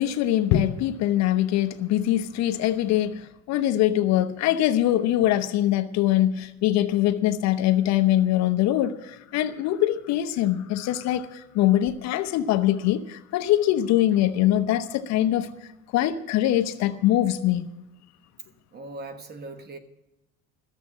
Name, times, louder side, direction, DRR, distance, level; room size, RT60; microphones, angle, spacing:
voice 1, 0.0-15.5 15.9-17.6, left 13 dB, 55° left, 0.9 m, -23 dB
voice 2, 18.7-19.8, right 2 dB, 30° right, 1.4 m, -39 dB
13.5 x 7.3 x 9.6 m
cardioid pair, 135°, 33 cm